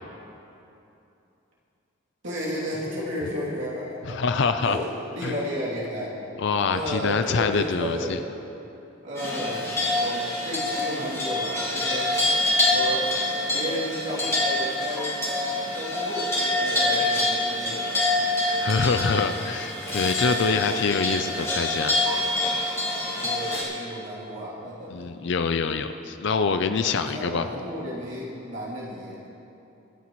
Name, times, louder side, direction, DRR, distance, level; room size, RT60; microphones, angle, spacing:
voice 1, 2.2-4.2 4.6-6.1 6.7-8.2 9.0-12.1 12.7-13.1 13.5-15.2 15.7-17.8 20.5-20.8 23.2-25.1 26.8-29.3, equal, 65° right, -7 dB, 2.9 m, -33 dB
voice 2, 4.1-4.8 5.2-5.3 6.4-8.2 18.5-22.0 24.9-27.5, left 5 dB, 60° left, 8 dB, 0.5 m, -25 dB
sound 1, 9.2-23.6, left 1 dB, 15° left, 2.0 m, -26 dB
23.5 x 9.9 x 3.1 m, 2.9 s
head